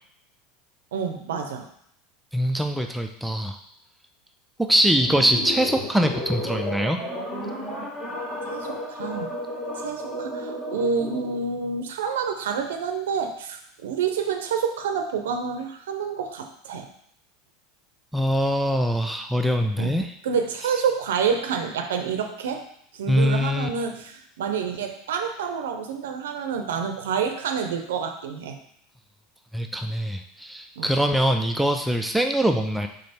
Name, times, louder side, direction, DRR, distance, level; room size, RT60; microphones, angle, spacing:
voice 1, 0.9-1.7 8.5-9.3 9.8-16.9 19.8-20.0 20.2-22.6 22.9-28.6 30.8-30.9, right 6 dB, 90° right, 5 dB, 0.5 m, -28 dB
voice 2, 2.3-3.6 4.6-7.0 18.1-20.1 23.1-23.7 29.5-32.9, equal, 5° right, 5 dB, 0.4 m, -23 dB
sound 1, 5.0-11.4, equal, 30° left, 1.8 m, -33 dB
3.8 x 3.4 x 4.2 m, 0.68 s
supercardioid pair, 115°, 0 cm